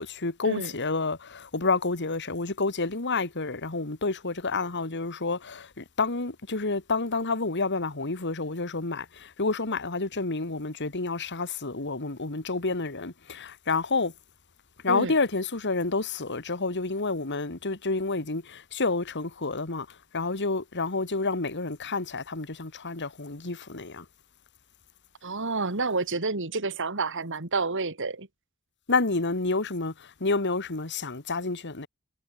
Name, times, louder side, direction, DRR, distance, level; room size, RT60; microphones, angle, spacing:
voice 1, 0.0-14.1 14.8-19.9 20.1-24.0 28.9-31.9, left 3 dB, 55° left, 2.1 m, -29 dB
voice 2, 25.2-28.3, right 3 dB, 60° right, 2.4 m, -29 dB
head